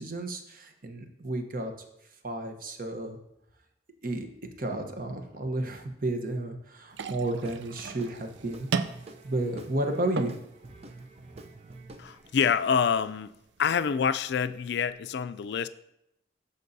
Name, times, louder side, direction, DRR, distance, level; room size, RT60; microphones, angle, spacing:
voice 1, 0.0-1.7 2.2-3.2 4.0-4.3 4.6-8.7 9.2-10.3, right 2 dB, 50° right, 5 dB, 1.0 m, -32 dB
sound 1, 6.9-14.9, right 4 dB, 85° right, 0.5 m, -39 dB
Guitar / Drum, 7.4-13.0, right 2 dB, 35° right, 0.6 m, -49 dB
voice 2, 12.0-13.3 13.6-15.7, left 7 dB, 65° left, 13 dB, 0.4 m, -26 dB
14.0 x 5.3 x 2.7 m, 0.82 s
head